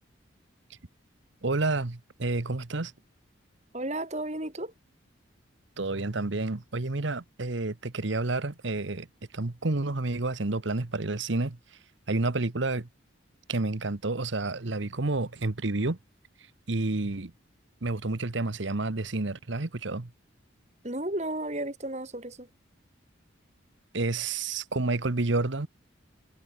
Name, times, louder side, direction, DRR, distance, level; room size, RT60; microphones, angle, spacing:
voice 1, 1.4-2.9 5.8-9.1 9.3-11.6 12.1-12.9 13.5-16.0 16.7-17.3 17.8-20.1 23.9-25.7, right 2 dB, 65° right, 1.1 m, -29 dB
voice 2, 3.7-4.7 20.8-22.5, right 1 dB, 35° right, 3.0 m, -33 dB
head